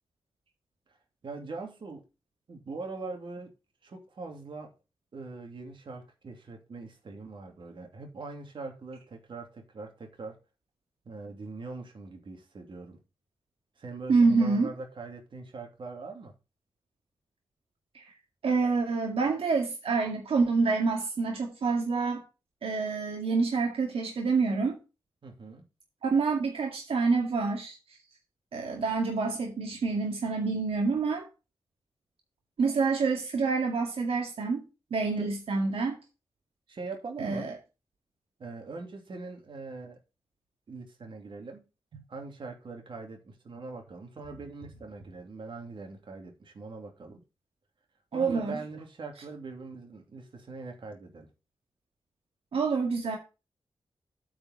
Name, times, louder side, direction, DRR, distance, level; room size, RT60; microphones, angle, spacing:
voice 1, 1.2-2.0 2.5-3.5 3.8-4.7 5.1-10.4 11.1-13.0 13.8-16.3 25.2-25.6 35.2-35.3 36.7-37.5 38.4-40.0 40.7-41.6 42.1-47.2 48.1-51.3, right 3 dB, 55° right, 2.6 m, -42 dB
voice 2, 14.1-14.7 17.9-18.0 18.4-22.2 22.6-24.8 26.0-27.8 28.5-31.3 32.6-34.6 34.9-36.0 37.2-37.5 48.1-48.6 52.5-53.2, right 4 dB, 75° right, 2.0 m, -27 dB
8.7 x 5.0 x 6.4 m
wide cardioid pair, 155°, 10 cm